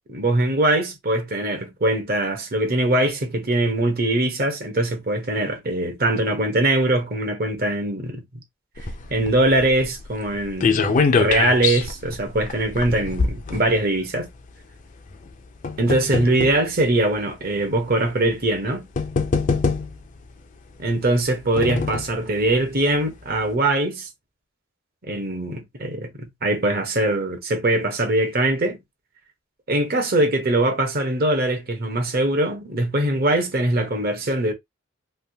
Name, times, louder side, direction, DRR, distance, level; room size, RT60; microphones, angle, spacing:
voice 1, 0.0-8.2 9.1-14.3 15.8-18.9 20.8-24.1 25.0-28.8 29.7-34.5, right 1 dB, 50° right, 1.0 m, -22 dB
sound 1, 8.8-14.2 15.1-16.6 17.5-17.6 18.5-18.6 19.0-20.2 21.1-22.2 22.6-22.7 23.0-23.1, left 4 dB, 40° left, 0.4 m, -24 dB
3.3 x 2.3 x 2.7 m
head